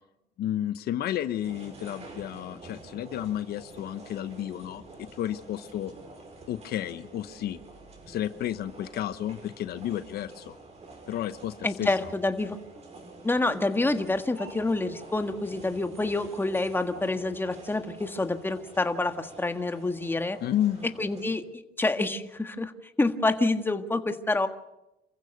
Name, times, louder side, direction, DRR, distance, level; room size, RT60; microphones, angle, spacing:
voice 1, 0.4-5.9 6.5-7.6 8.1-10.5 11.1-11.9 20.4-20.9, left 11 dB, 70° left, 12 dB, 1.0 m, -32 dB
sound 1, 1.4-21.3, right 3 dB, 40° right, 5.7 m, -48 dB
voice 2, 11.6-12.6 13.2-20.4 21.0-22.7 23.0-24.5, left 2 dB, 10° left, 8 dB, 1.6 m, -27 dB
27.5 x 15.5 x 6.6 m, 0.93 s
cardioid pair, 110°, 17 cm